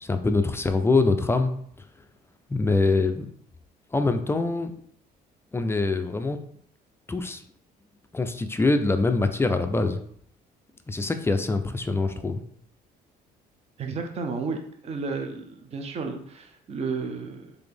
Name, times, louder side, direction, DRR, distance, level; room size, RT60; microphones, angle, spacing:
voice 1, 0.0-1.5 2.5-3.3 3.9-4.7 5.5-6.4 7.1-7.4 8.1-10.0 10.9-12.4, left 3 dB, 15° left, 7 dB, 0.4 m, -24 dB
voice 2, 13.8-17.6, right 4 dB, 40° right, 4 dB, 0.6 m, -32 dB
4.0 x 3.4 x 3.4 m, 0.65 s
cardioid pair, 110°, 17 cm